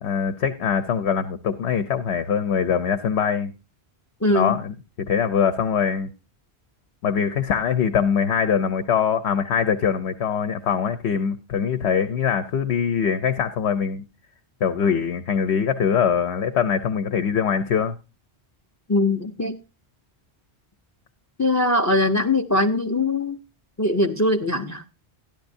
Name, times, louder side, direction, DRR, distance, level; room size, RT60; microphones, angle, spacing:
voice 1, 0.0-3.5 4.3-4.7 5.1-6.1 7.0-14.0 14.6-18.0, left 7 dB, 85° left, 1.0 m, -23 dB
voice 2, 4.2-4.5 18.9-19.6 21.4-23.4 23.8-24.8, left 2 dB, 25° left, 0.4 m, -21 dB
13.0 x 10.5 x 2.6 m
omnidirectional pair, 1.1 m